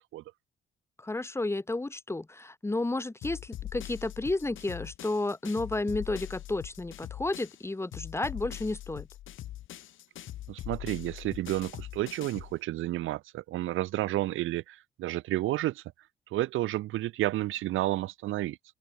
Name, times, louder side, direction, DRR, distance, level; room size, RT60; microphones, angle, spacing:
voice 1, 1.0-9.1, left 2 dB, 15° left, 1.6 m, -32 dB
sound 1, 3.2-7.6 7.9-12.6, left 13 dB, 80° left, 3.1 m, -42 dB
voice 2, 10.5-15.8 16.3-18.6, right 16 dB, 90° right, 2.9 m, -31 dB
open air
cardioid pair, 90°, 20 cm